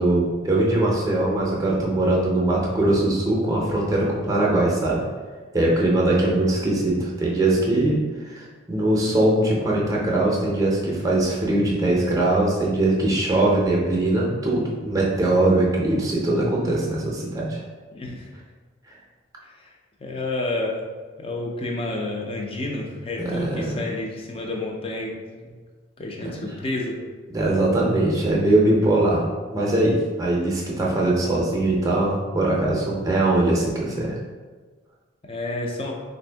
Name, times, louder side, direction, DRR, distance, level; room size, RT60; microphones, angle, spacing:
voice 1, 0.0-5.0 5.5-17.6 23.2-23.8 26.2-26.5 27.3-34.2, right 2 dB, 15° right, -4 dB, 0.6 m, -21 dB
voice 2, 17.9-18.3 19.6-19.7 20.0-20.9 21.2-25.6 26.0-27.0 35.3-36.0, left 2 dB, 30° left, 0 dB, 0.4 m, -30 dB
3.5 x 2.6 x 3.4 m, 1.4 s
head